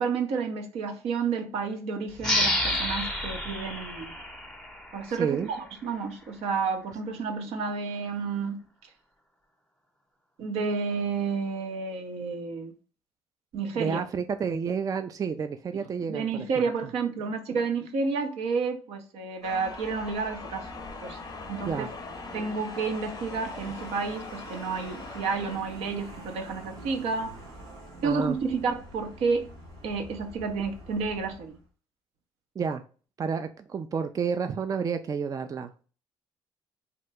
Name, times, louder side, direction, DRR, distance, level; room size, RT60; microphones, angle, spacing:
voice 1, 0.0-4.2 4.9-8.7 10.4-12.7 13.5-14.0 16.1-21.2 21.5-21.9 22.3-27.3 28.0-29.5 29.8-31.6, right 5 dB, 70° right, 0.6 m, -30 dB
sound 1, 2.2-5.5, left 1 dB, 5° left, 0.9 m, -29 dB
voice 2, 5.1-5.5 13.7-16.7 21.6-21.9 28.0-28.4 32.6-32.8 33.2-35.8, right 6 dB, 35° right, 0.3 m, -30 dB
sound 2, 19.4-25.6, left 4 dB, 35° left, 0.5 m, -42 dB
Vehicle, 19.4-31.7, right 1 dB, 85° right, 1.2 m, -46 dB
2.9 x 2.2 x 3.3 m
hypercardioid pair, 55°, 11 cm